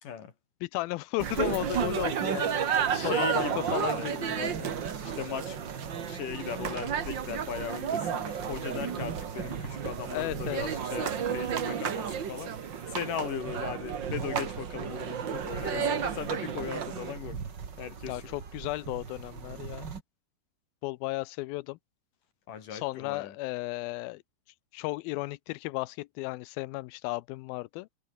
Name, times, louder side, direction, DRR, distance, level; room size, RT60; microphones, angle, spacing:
voice 1, 0.0-0.3 2.9-4.1 5.0-5.6 6.0-17.4 17.8-18.3 22.5-23.3, left 8 dB, 55° left, 4.4 m, -38 dB
voice 2, 0.6-3.4 3.7-4.7 10.1-10.6 15.7-16.0 18.1-19.9 20.8-21.8 22.7-24.2 24.7-27.9, left 21 dB, 80° left, 2.3 m, -34 dB
sound 1, 1.2-20.0, right 6 dB, 35° right, 2.0 m, -42 dB
sound 2, 1.2-17.1, right 8 dB, 65° right, 1.1 m, -32 dB
omnidirectional pair, 4.6 m